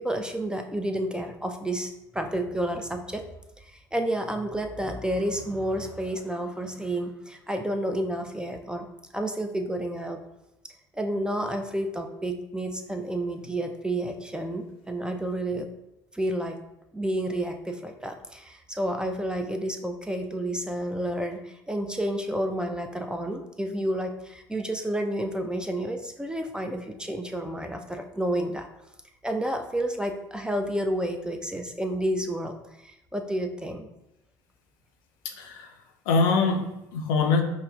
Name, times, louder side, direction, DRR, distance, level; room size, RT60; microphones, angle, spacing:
voice 1, 0.0-3.2 3.7-8.9 9.1-10.2 10.9-15.7 16.1-16.6 16.9-28.7 29.2-32.5 32.8-33.9, right 1 dB, 5° right, 5 dB, 0.3 m, -30 dB
voice 2, 35.2-35.7 36.1-37.4, left 4 dB, 75° left, 3 dB, 0.4 m, -24 dB
5.5 x 2.1 x 2.2 m, 0.90 s
hypercardioid pair, 60°, 12 cm